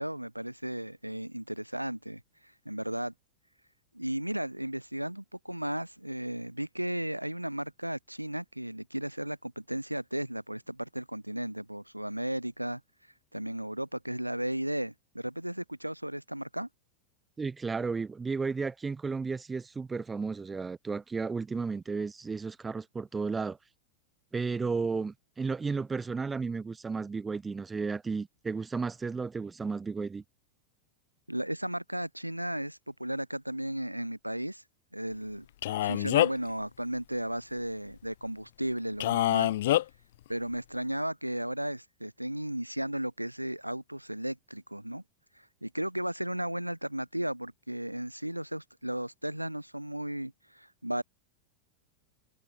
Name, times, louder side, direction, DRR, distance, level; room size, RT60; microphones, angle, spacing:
voice 1, 0.0-3.1 3.9-12.8 13.3-16.7 31.3-34.6 34.9-39.6 40.3-45.0 45.3-51.0, right 1 dB, 90° right, 1.1 m, -35 dB
voice 2, 17.4-23.6 24.3-30.2, right 4 dB, 15° right, 3.7 m, -33 dB
Male speech man speaking, 35.6-36.5 39.0-39.8, left 14 dB, 55° left, 1.5 m, -25 dB
figure-of-eight pair, 90°, 0 cm